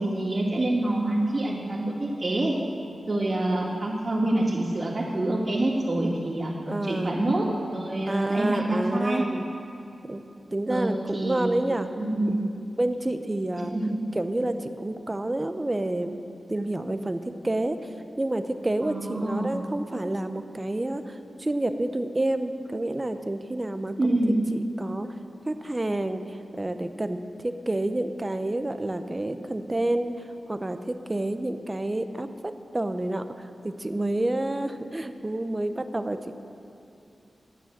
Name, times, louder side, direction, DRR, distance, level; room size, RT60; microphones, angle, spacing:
voice 1, 0.0-2.6 3.1-6.5 6.8-9.2 10.7-11.5 12.0-12.4 13.7-13.9 18.8-19.5 24.0-24.4, right 1 dB, 45° right, -10 dB, 2.4 m, -26 dB
voice 2, 6.7-7.2 8.1-9.5 10.1-10.2 10.5-11.9 12.8-13.7 14.1-16.2 16.5-24.2 24.5-25.1 25.5-30.1 30.5-36.3, right 1 dB, 25° right, 9 dB, 0.8 m, -29 dB
12.5 x 9.0 x 7.5 m, 2.7 s
cardioid pair, 65°, 0 cm